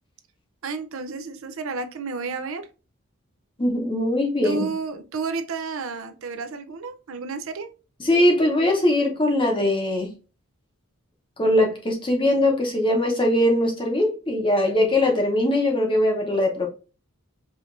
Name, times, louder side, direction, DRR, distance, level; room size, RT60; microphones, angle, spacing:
voice 1, 0.6-2.7 4.4-7.7, right 4 dB, 70° right, 0.5 m, -31 dB
voice 2, 3.6-4.7 8.0-10.1 11.4-16.7, left 1 dB, 25° left, 0.9 m, -21 dB
4.9 x 2.6 x 2.6 m
head